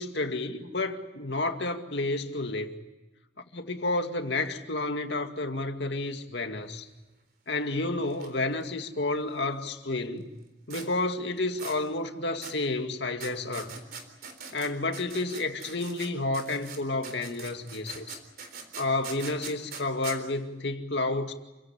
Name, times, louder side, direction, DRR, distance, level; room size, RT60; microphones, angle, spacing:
voice 1, 0.0-2.8 3.5-6.9 7.5-10.3 10.7-13.8 14.5-18.2 18.8-21.3, left 2 dB, 65° left, 2.2 m, -30 dB
sound 1, 8.1-8.3 8.5-8.6 10.7-10.9 11.6-11.8 12.4-12.6 13.2-16.1 16.3-20.2, right 5 dB, 50° right, 3.8 m, -42 dB
28.5 x 17.0 x 9.9 m
head